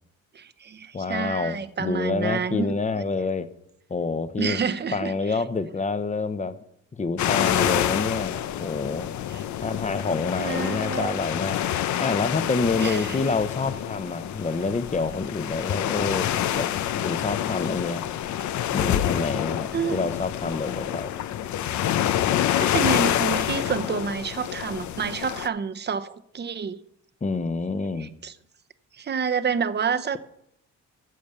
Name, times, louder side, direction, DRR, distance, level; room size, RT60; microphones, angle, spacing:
voice 1, 0.3-3.0 4.4-5.4 9.3-9.4 10.4-11.2 12.8-13.3 19.7-20.0 22.5-26.8 28.0-28.3 29.0-30.2, right 6 dB, 35° right, 0.8 m, -29 dB
voice 2, 0.9-3.5 3.9-4.6 4.9-6.6 7.0-9.1 9.6-11.6 12.0-16.3 16.5-16.7 17.0-18.1 18.7-21.1 27.2-28.1, left 4 dB, 25° left, 0.9 m, -27 dB
sound 1, 7.2-25.5, left 11 dB, 70° left, 0.7 m, -27 dB
14.5 x 5.2 x 7.0 m
cardioid pair, 90°, 30 cm